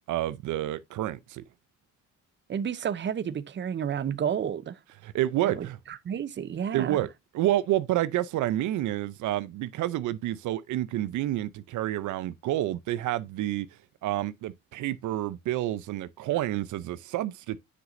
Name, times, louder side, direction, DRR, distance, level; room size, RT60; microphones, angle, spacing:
voice 1, 0.1-1.4 5.0-5.8 6.7-7.1 7.3-13.7 14.0-17.6, right 14 dB, 75° right, 0.6 m, -29 dB
voice 2, 2.5-4.8 5.4-7.1, right 8 dB, 40° right, 0.6 m, -31 dB
7.8 x 6.3 x 2.5 m
cardioid pair, 90°, 30 cm